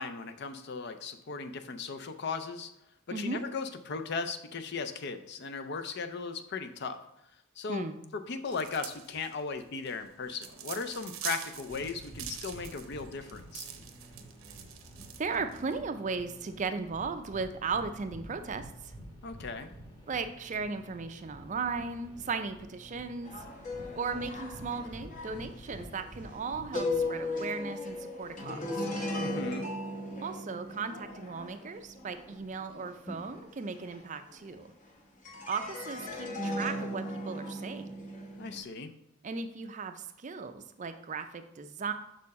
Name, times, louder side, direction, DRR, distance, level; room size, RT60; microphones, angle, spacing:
voice 1, 0.0-2.7 3.2-7.0 7.6-7.8 8.1-13.7 19.2-19.7 29.2-29.7 38.4-38.9, left 4 dB, 55° left, 9 dB, 0.5 m, -37 dB
sound 1, 8.5-15.7, right 9 dB, 75° right, 0.7 m, -44 dB
sound 2, 11.7-27.0, right 1 dB, 20° left, 1.3 m, -50 dB
voice 2, 15.2-18.9 20.1-23.4 24.0-28.9 30.2-34.7 35.5-37.9 39.2-41.9, right 4 dB, 35° right, 9 dB, 0.4 m, -36 dB
sound 3, 23.2-34.8 35.2-38.6, left 1 dB, 40° left, 0.9 m, -37 dB
6.3 x 4.4 x 4.1 m, 0.82 s
head